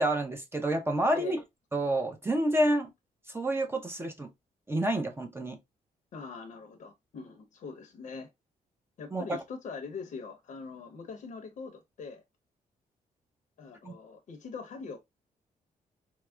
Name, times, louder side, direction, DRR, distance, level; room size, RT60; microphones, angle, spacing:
voice 1, 0.0-1.4 1.7-2.9 3.3-4.3 4.7-5.6 9.1-9.4 13.8-13.9, right 1 dB, 15° right, 0.6 m, -28 dB
voice 2, 6.1-8.3 9.0-12.2 13.6-15.0, left 4 dB, 60° left, 0.8 m, -42 dB
4.6 x 2.0 x 2.2 m
cardioid pair, 120°, 15 cm